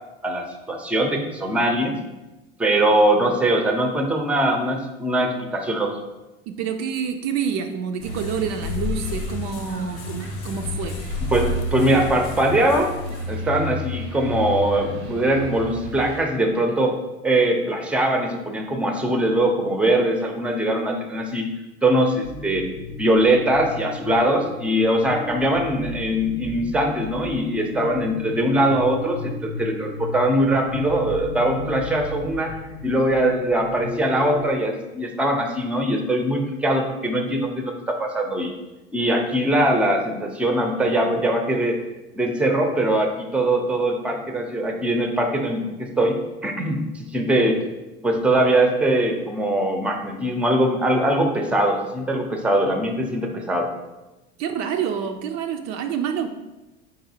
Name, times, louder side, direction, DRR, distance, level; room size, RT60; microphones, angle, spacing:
voice 1, 0.2-2.0 2.6-6.0 11.3-12.9 13.3-17.0 17.2-21.5 21.8-22.7 23.0-32.6 32.8-38.5 38.9-41.8 42.1-47.6 48.0-53.7, right 1 dB, 5° right, 4 dB, 0.5 m, -21 dB
voice 2, 6.5-11.0 54.4-56.3, right 7 dB, 55° right, 6 dB, 0.4 m, -27 dB
sound 1, 8.0-13.5, left 6 dB, 60° left, 0.5 m, -34 dB
sound 2, 8.0-16.2, equal, 80° right, 0.8 m, -32 dB
sound 3, 22.2-34.5, left 2 dB, 90° left, 0.8 m, -35 dB
4.1 x 3.9 x 2.7 m, 1.0 s
hypercardioid pair, 85°, 32 cm